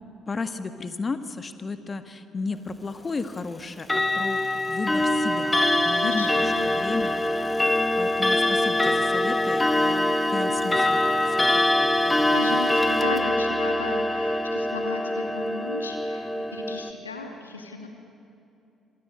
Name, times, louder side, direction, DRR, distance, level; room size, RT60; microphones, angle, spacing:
voice 1, 0.3-7.2 8.0-12.6, left 4 dB, 35° left, 10 dB, 1.7 m, -34 dB
Clock, 3.8-16.9, left 1 dB, 15° left, 1.9 m, -23 dB
voice 2, 5.9-7.0 12.3-17.9, left 4 dB, 90° left, 4 dB, 2.6 m, -36 dB
26.5 x 25.5 x 8.8 m, 2.7 s
figure-of-eight pair, 50°, 0 cm